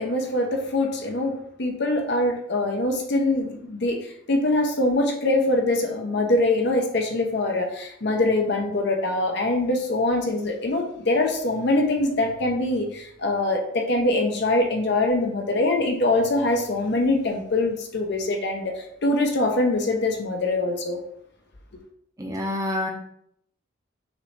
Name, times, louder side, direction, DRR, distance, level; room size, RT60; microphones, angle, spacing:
voice 1, 0.0-21.0 21.7-21.8, left 2 dB, 55° left, 2 dB, 0.7 m, -23 dB
voice 2, 22.2-22.9, left 1 dB, 15° right, -1 dB, 0.7 m, -27 dB
6.2 x 2.6 x 3.2 m, 0.70 s
head